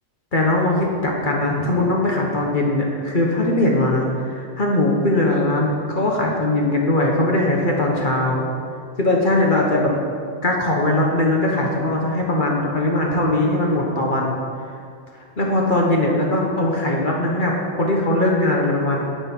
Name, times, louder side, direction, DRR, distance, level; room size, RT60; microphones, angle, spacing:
voice 1, 0.3-8.5 9.0-9.9 10.4-14.4 15.4-19.0, left 1 dB, 45° left, -1 dB, 1.3 m, -20 dB
9.1 x 9.0 x 4.5 m, 2.2 s
omnidirectional pair, 1.2 m